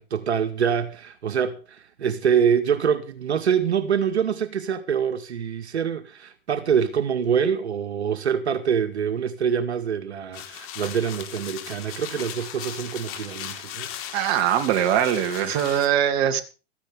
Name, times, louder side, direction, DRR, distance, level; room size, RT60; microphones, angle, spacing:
voice 1, 0.0-13.9, right 7 dB, 90° right, 2.1 m, -25 dB
sound 1, 10.3-15.9, left 11 dB, 40° left, 4.4 m, -37 dB
voice 2, 14.1-16.4, right 10 dB, 45° right, 2.8 m, -22 dB
17.0 x 15.0 x 3.7 m
hypercardioid pair, 120°, 32 cm